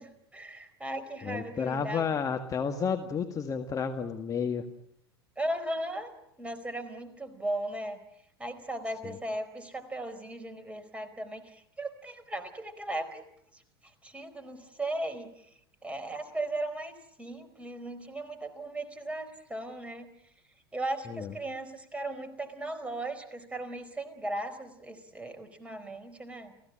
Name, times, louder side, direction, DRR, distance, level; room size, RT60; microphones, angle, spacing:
voice 1, 0.0-2.2 5.4-6.1 6.4-8.0 8.4-13.2 13.5-15.5 15.8-20.3 20.7-26.5, right 1 dB, 10° right, 7 dB, 4.5 m, -37 dB
voice 2, 1.2-4.6 21.1-21.3, left 6 dB, 25° left, 5 dB, 1.7 m, -31 dB
29.5 x 17.0 x 8.8 m, 0.80 s
figure-of-eight pair, 85°, 13 cm